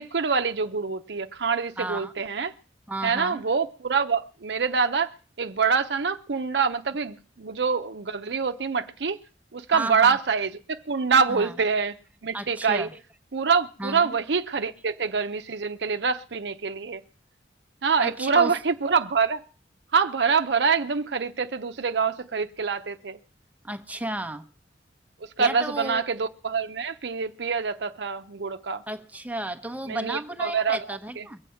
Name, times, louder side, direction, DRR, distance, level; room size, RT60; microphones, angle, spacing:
voice 1, 0.0-2.5 3.0-5.1 5.4-9.2 9.5-11.9 12.2-12.9 13.3-17.0 17.8-19.4 19.9-23.2 25.4-28.8 29.9-30.8, right 5 dB, 75° right, 0.7 m, -25 dB
voice 2, 1.8-2.1 2.9-3.4 9.7-10.2 11.3-11.6 12.3-13.0 13.8-14.2 18.0-18.6 23.6-24.5 25.4-26.0 28.9-31.4, right 1 dB, 10° right, 0.9 m, -33 dB
22.5 x 7.8 x 5.7 m
head